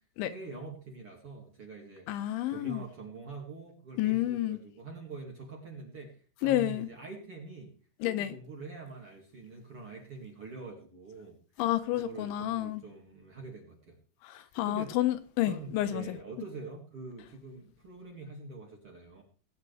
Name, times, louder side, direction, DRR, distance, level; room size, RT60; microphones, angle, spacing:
voice 1, 0.3-2.1 2.5-7.8 8.0-11.4 11.9-14.0 14.3-15.0 15.4-19.2, right 4 dB, 40° right, 2.4 m, -45 dB
voice 2, 2.1-2.8 4.0-4.6 6.4-6.9 8.0-8.4 11.6-12.8 14.2-16.2, left 14 dB, 80° left, 3.0 m, -30 dB
19.0 x 10.0 x 3.5 m
omnidirectional pair, 5.6 m